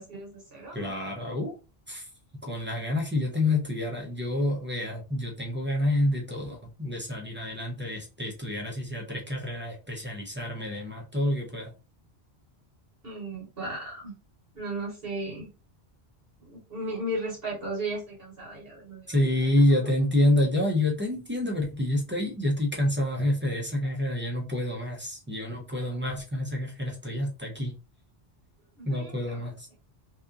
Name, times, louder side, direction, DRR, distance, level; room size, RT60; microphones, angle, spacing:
voice 1, 0.0-0.9 13.0-14.1 14.5-15.5 16.4-19.4 28.8-29.1, right 1 dB, 65° right, -3 dB, 1.2 m, -35 dB
voice 2, 0.7-1.5 1.9-2.1 2.4-11.7 19.1-27.7 28.8-29.7, left 1 dB, 20° right, 0 dB, 0.3 m, -28 dB
2.8 x 2.3 x 2.4 m, 0.32 s
omnidirectional pair, 1.1 m